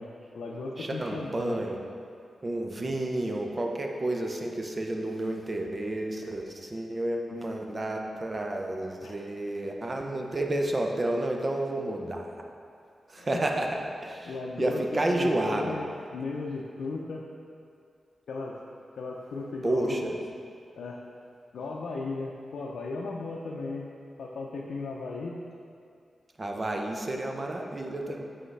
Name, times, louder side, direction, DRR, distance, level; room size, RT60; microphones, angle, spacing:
voice 1, 0.0-1.7 7.4-7.5 9.0-9.2 13.2-13.5 14.3-17.3 18.3-18.6 19.0-20.1 20.8-21.0 21.5-23.9 24.2-25.4, left 3 dB, 85° left, -3 dB, 0.5 m, -36 dB
voice 2, 0.8-1.7 2.4-12.4 13.1-13.7 14.0-15.7 19.6-20.2 26.4-28.2, right 1 dB, 30° right, 2 dB, 0.7 m, -30 dB
7.7 x 5.6 x 3.3 m, 2.4 s
cardioid pair, 85°, 0 cm